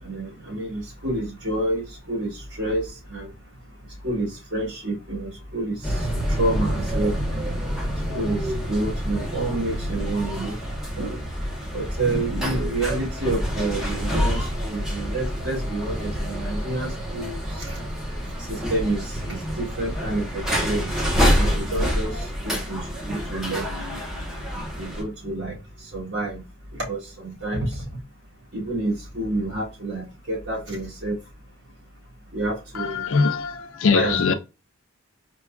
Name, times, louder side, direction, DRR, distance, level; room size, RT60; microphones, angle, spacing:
voice 1, 0.0-3.3 4.0-7.2 8.1-10.6 11.0-11.2 11.7-17.8 18.4-21.0 21.3-24.2 24.5-25.6 25.8-26.4 26.8-27.9 28.5-31.2 32.3-33.1 33.9-34.3, right 2 dB, 50° right, 2.0 m, -29 dB
sound 1, 5.8-25.0, equal, ahead, 0.7 m, -27 dB
voice 2, 32.7-34.3, left 5 dB, 65° left, 0.4 m, -22 dB
4.4 x 2.2 x 2.2 m
head